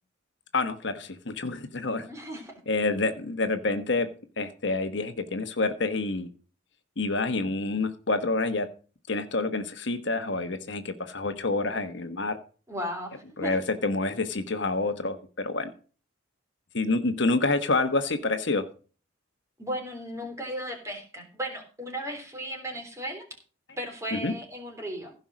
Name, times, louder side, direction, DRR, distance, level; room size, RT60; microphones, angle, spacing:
voice 1, 0.5-2.1 2.7-4.1 4.4-6.3 7.0-8.7 9.1-12.4 13.4-15.7 16.7-18.7 24.1-24.3, left 3 dB, 55° left, 8 dB, 1.2 m, -28 dB
voice 2, 2.1-2.5 12.7-13.5 19.6-23.2 23.8-25.1, equal, 15° right, 3 dB, 3.3 m, -36 dB
16.0 x 5.5 x 6.3 m, 0.37 s
head